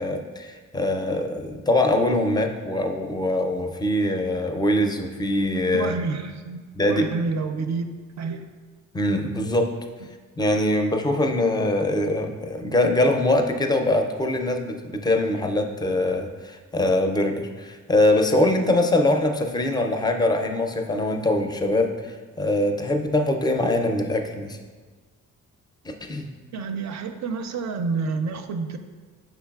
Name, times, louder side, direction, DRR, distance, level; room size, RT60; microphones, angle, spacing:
voice 1, 0.0-5.9 6.8-7.0 8.9-9.7 10.4-24.6 25.8-26.3, left 1 dB, 15° left, 5 dB, 0.4 m, -23 dB
voice 2, 5.7-7.9 8.2-8.5 10.0-10.1 26.5-28.8, right 4 dB, 60° right, 7 dB, 0.4 m, -29 dB
5.6 x 3.9 x 2.3 m, 1.4 s
cardioid pair, 65°, 33 cm